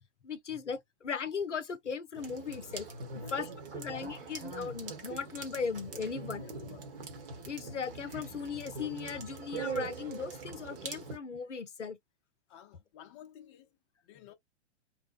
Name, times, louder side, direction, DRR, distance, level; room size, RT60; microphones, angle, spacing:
voice 1, 0.2-2.9 3.2-6.4 7.4-12.0, left 6 dB, 90° left, 0.6 m, -38 dB
sound 1, 2.1-11.2, right 4 dB, 50° right, 1.0 m, -42 dB
voice 2, 3.2-3.6 6.4-6.9 12.5-13.8 14.0-14.3, left 10 dB, 25° left, 0.4 m, -53 dB
2.8 x 2.0 x 2.3 m
figure-of-eight pair, 110°, 35 cm